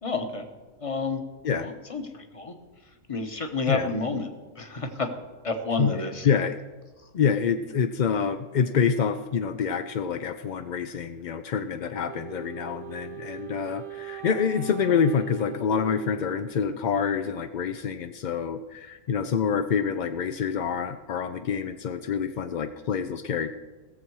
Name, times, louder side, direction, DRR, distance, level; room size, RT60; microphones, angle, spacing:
voice 1, 0.0-0.5 0.8-1.2 1.6-2.5 3.1-5.1 5.4-6.3, left 3 dB, 25° left, 6 dB, 1.1 m, -30 dB
voice 2, 6.2-6.6 7.1-23.5, left 6 dB, 65° left, 9 dB, 0.4 m, -27 dB
Wind instrument woodwind instrument, 12.1-17.1, right 14 dB, 50° right, 0.7 m, -41 dB
17.0 x 7.4 x 4.7 m, 1.3 s
omnidirectional pair, 1.4 m